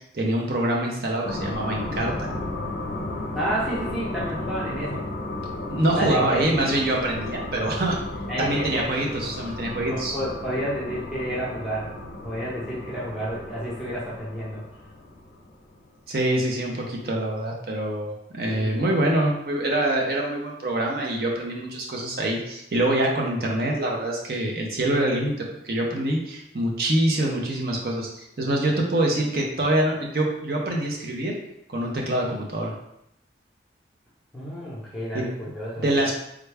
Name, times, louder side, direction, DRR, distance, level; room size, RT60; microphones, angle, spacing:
voice 1, 0.1-2.3 5.7-8.0 8.4-10.2 16.1-31.4 31.7-32.7 35.1-35.3 35.8-36.2, right 1 dB, 60° right, -1 dB, 0.6 m, -25 dB
sound 1, 1.2-15.9, left 2 dB, 60° left, 0.5 m, -34 dB
voice 2, 3.4-5.1 5.9-6.5 8.3-8.9 9.8-11.9 12.2-14.6 18.5-18.9 34.3-35.8, equal, ahead, -9 dB, 0.8 m, -30 dB
3.5 x 2.2 x 3.4 m, 0.78 s
head